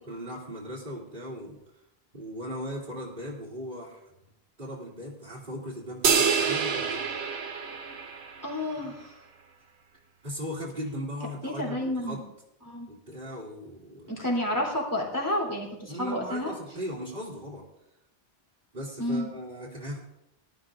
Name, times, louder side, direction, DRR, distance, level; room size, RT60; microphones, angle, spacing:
voice 1, 0.1-1.6 2.1-4.1 4.6-7.0 8.8-8.9 10.2-12.2 12.9-14.1 15.9-17.7 18.7-20.0, equal, 50° right, -8 dB, 2.8 m, -38 dB
sound 1, 6.0-8.6, right 6 dB, 80° right, 1.2 m, -27 dB
voice 2, 8.4-9.1 11.4-12.2 12.6-12.9 14.1-16.5 19.0-19.3, left 1 dB, 15° left, -3 dB, 3.6 m, -30 dB
19.5 x 13.0 x 2.6 m, 0.85 s
omnidirectional pair, 1.1 m